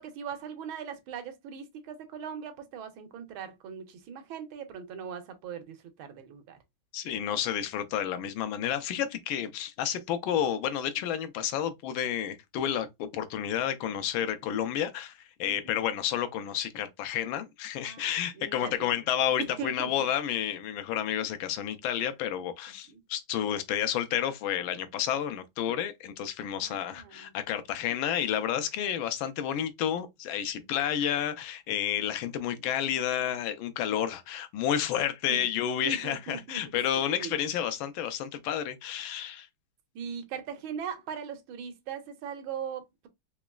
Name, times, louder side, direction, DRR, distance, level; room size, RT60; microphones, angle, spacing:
voice 1, 0.0-6.6 15.5-15.8 17.8-18.7 19.6-20.1 22.9-23.0 26.6-27.3 30.5-30.7 35.3-35.4 35.8-36.6 37.2-37.3 39.9-43.1, right 7 dB, 85° right, 1.6 m, -40 dB
voice 2, 6.9-39.5, left 10 dB, 80° left, 1.4 m, -30 dB
4.0 x 3.0 x 2.3 m
omnidirectional pair, 2.2 m